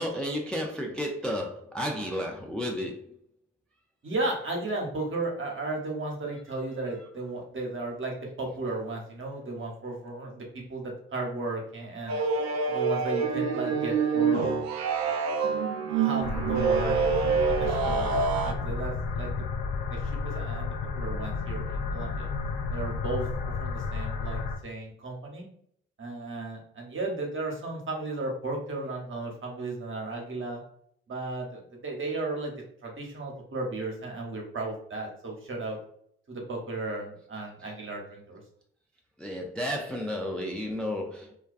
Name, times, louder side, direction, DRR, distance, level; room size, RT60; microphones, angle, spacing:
voice 1, 0.0-3.1 12.1-12.3 39.2-41.3, equal, 5° left, 1 dB, 0.4 m, -32 dB
voice 2, 4.0-12.2 12.7-14.6 15.9-19.5 19.8-22.3 22.7-25.5 26.0-30.6 31.1-32.5 32.8-35.8 36.3-38.4, right 2 dB, 40° right, 0 dB, 0.9 m, -35 dB
sound 1, 12.1-18.5, right 5 dB, 65° right, 0.4 m, -26 dB
sound 2, 16.2-24.6, left 4 dB, 70° left, 0.4 m, -32 dB
2.3 x 2.2 x 2.5 m, 0.67 s
hypercardioid pair, 45°, 30 cm